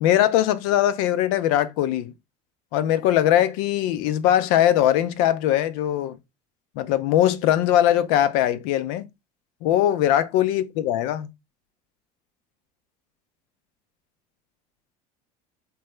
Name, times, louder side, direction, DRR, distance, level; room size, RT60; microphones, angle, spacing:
voice 1, 0.0-2.1 2.7-6.2 6.8-9.0 9.6-11.3, left 12 dB, 65° left, 0.5 m, -21 dB
3.3 x 2.3 x 3.1 m
hypercardioid pair, 80°, 20 cm